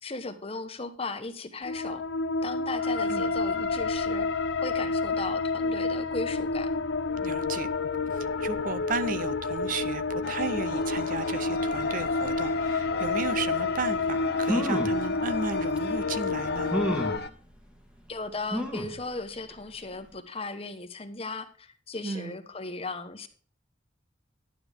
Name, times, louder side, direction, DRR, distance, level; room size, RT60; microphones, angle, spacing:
voice 1, 0.0-2.0 2.4-4.3 4.6-6.7 18.1-23.3, left 3 dB, 30° left, 1.1 m, -36 dB
sound 1, 1.6-17.2, left 3 dB, 75° left, 0.6 m, -29 dB
voice 2, 7.2-7.7 8.1-16.7 22.0-22.4, right 4 dB, 45° right, 0.6 m, -34 dB
sound 2, 10.2-17.3, left 3 dB, 60° left, 1.2 m, -39 dB
sound 3, 14.4-15.0 15.8-15.9 16.7-17.2 18.5-19.0 19.5-19.6 19.9-20.0, equal, 5° right, 1.5 m, -29 dB
11.5 x 9.3 x 3.5 m
head